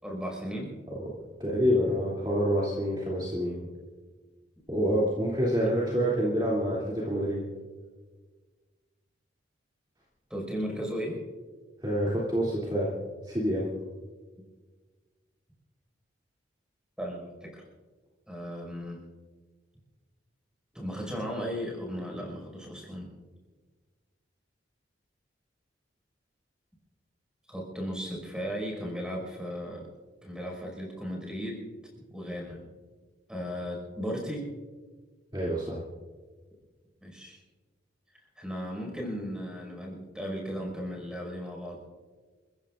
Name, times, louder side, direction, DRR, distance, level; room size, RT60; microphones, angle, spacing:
voice 1, 0.0-0.7 10.3-11.2 17.0-17.6 18.3-19.0 20.7-23.1 27.5-29.9 30.2-31.7 32.1-32.6 33.3-34.5 37.0-37.4 38.4-41.8, equal, 5° right, -1 dB, 5.3 m, -36 dB
voice 2, 1.4-3.6 4.7-7.4 11.8-12.9 13.2-13.7 35.3-35.8, equal, 25° right, -6 dB, 2.9 m, -27 dB
29.5 x 15.5 x 2.5 m, 1.4 s
head